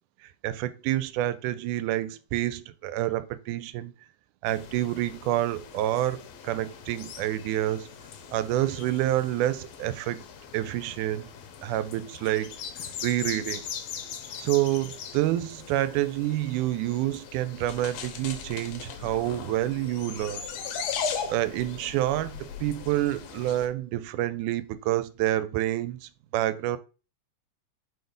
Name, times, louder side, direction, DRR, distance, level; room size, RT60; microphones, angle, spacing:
voice 1, 0.4-3.9 4.4-7.9 8.3-10.2 10.5-11.3 11.6-12.5 13.0-13.7 14.4-20.4 21.3-26.8, right 14 dB, 90° right, 2.1 m, -28 dB
sound 1, 4.5-23.7, left 7 dB, 70° left, 1.8 m, -39 dB
4.5 x 4.3 x 5.1 m
omnidirectional pair, 3.5 m